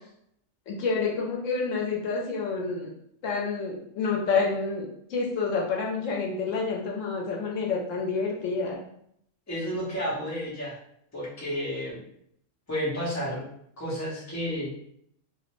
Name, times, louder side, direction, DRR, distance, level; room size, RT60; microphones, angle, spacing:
voice 1, 0.7-2.9 3.2-8.8, left 4 dB, 80° left, -1 dB, 1.0 m, -28 dB
voice 2, 9.5-10.8 11.1-12.0 12.7-13.4 13.8-14.7, equal, 15° left, -7 dB, 0.7 m, -31 dB
2.6 x 2.0 x 3.0 m, 0.70 s
omnidirectional pair, 1.3 m